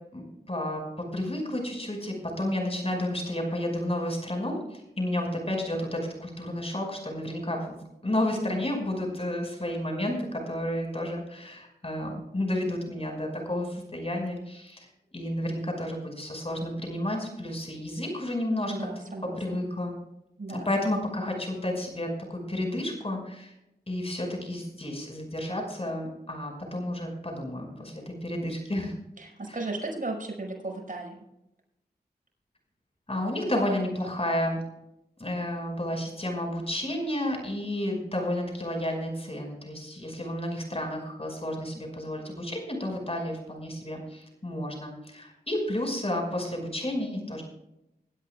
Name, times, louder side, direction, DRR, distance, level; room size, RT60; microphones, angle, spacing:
voice 1, 0.1-14.9 15.1-18.7 19.4-20.0 20.5-23.5 23.9-28.9 29.5-29.6 33.1-34.6 35.2-47.4, left 1 dB, 35° left, 2 dB, 5.7 m, -31 dB
voice 2, 18.7-19.3 20.4-20.7 29.2-31.2, right 2 dB, 55° right, 1 dB, 5.6 m, -35 dB
22.5 x 12.5 x 2.4 m, 0.84 s
cardioid pair, 40°, 17 cm